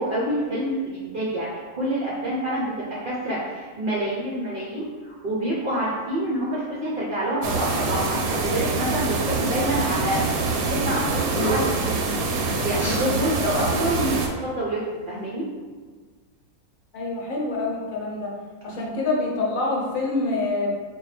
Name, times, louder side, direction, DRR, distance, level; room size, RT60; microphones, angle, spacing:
voice 1, 0.0-2.7 3.0-10.2 10.5-12.1 12.6-15.5 18.7-18.8, right 1 dB, 55° right, -7 dB, 0.6 m, -27 dB
sound 1, 7.4-14.3, right 3 dB, 85° right, 1.1 m, -25 dB
sound 2, 11.3-11.9 12.7-13.0, right 1 dB, 25° left, 1.1 m, -29 dB
voice 2, 16.9-18.3 18.6-20.7, left 3 dB, 70° left, -2 dB, 1.1 m, -26 dB
4.4 x 2.2 x 3.3 m, 1.5 s
omnidirectional pair, 1.5 m